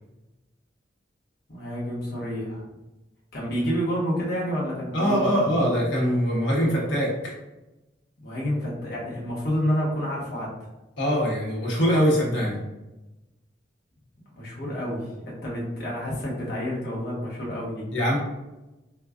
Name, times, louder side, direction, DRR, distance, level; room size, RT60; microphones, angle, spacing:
voice 1, 1.5-2.7 3.3-5.5 8.2-10.5 14.3-17.9, equal, 55° left, -5 dB, 1.1 m, -29 dB
voice 2, 4.9-7.1 11.0-12.6 17.9-18.2, equal, 75° left, -5 dB, 1.2 m, -22 dB
4.5 x 2.3 x 2.4 m, 1.0 s
head